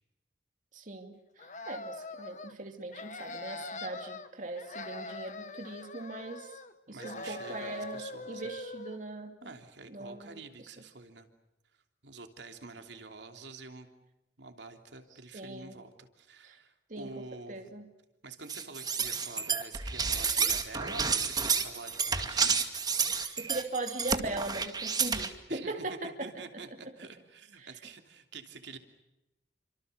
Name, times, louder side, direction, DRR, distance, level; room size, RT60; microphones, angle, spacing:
voice 1, 0.7-6.6 6.9-8.0 8.3-9.5 9.9-10.7 15.3-15.8 16.4-16.6 16.9-17.1 17.5-17.8 23.1-26.3 27.6-27.7, right 2 dB, 45° right, 4 dB, 2.7 m, -40 dB
sound 1, 1.4-2.5 2.9-4.3 4.6-6.7 7.0-9.0, left 2 dB, 40° left, 1.7 m, -42 dB
voice 2, 6.9-8.5 9.4-11.3 12.0-13.9 14.4-17.7 18.2-22.5 25.5-28.8, right 3 dB, 75° right, 6 dB, 3.2 m, -47 dB
sound 2, 18.5-25.3, right 5 dB, 20° right, 2.2 m, -30 dB
29.0 x 26.0 x 6.9 m, 0.94 s
head